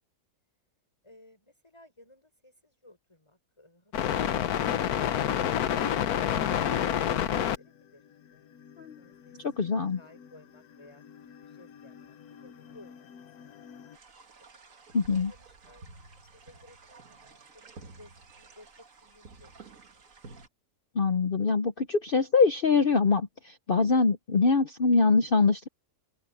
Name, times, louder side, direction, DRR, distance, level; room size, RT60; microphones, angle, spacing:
voice 1, 1.0-8.0 8.3-9.7 10.0-13.2 14.0-14.6 15.1-15.9 16.2-20.0, left 2 dB, 15° left, 6.5 m, -57 dB
sound 1, 3.9-7.6 8.7-8.8 9.6-10.3 11.0-13.9, left 10 dB, 70° left, 1.3 m, -29 dB
voice 2, 9.4-10.0 14.9-15.3 20.9-25.7, left 4 dB, 45° left, 0.8 m, -24 dB
sound 2, 13.9-20.5, right 3 dB, 55° right, 2.1 m, -52 dB
open air
omnidirectional pair, 1.7 m